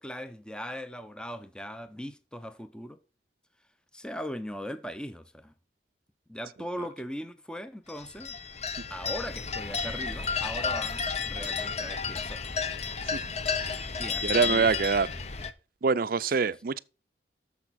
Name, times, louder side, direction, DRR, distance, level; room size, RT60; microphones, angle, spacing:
voice 1, 0.0-3.0 3.9-5.5 6.3-8.4 8.9-12.4 14.0-14.8 16.2-16.6, equal, 5° left, 0.7 m, -39 dB
sound 1, 7.9-15.5, left 5 dB, 40° left, 0.8 m, -32 dB
voice 2, 14.2-15.1 15.8-16.8, right 5 dB, 55° right, 0.5 m, -24 dB
10.5 x 7.0 x 4.2 m
head